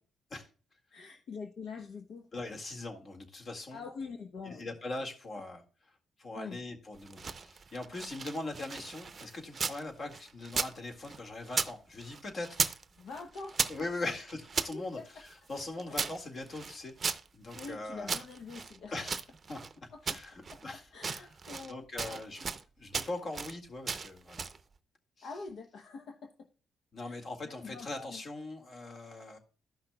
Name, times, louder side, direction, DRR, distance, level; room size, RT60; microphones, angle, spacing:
voice 1, 0.9-2.2 3.7-4.7 6.3-6.6 13.0-13.6 14.0-14.1 14.7-15.0 17.5-19.0 19.9-20.2 20.5-20.6 20.9-22.2 25.2-26.3 27.0-27.2 27.4-28.2, left 4 dB, 70° left, 0.9 m, -44 dB
voice 2, 2.3-3.8 4.4-5.6 6.2-12.7 13.7-16.9 17.3-18.2 18.9-19.2 19.5-21.3 21.6-22.5 22.8-24.4 25.2-25.3 26.9-29.4, left 2 dB, 45° left, 1.9 m, -41 dB
sound 1, 7.0-9.8 10.1-11.7 12.0-12.8 13.1-14.7 15.3-17.7 18.1-19.7 20.1-20.6 20.9-21.7 22.0-22.6 22.9-23.5 23.9-24.6, right 5 dB, 40° right, 0.6 m, -36 dB
13.5 x 5.7 x 2.3 m
cardioid pair, 90°, 0 cm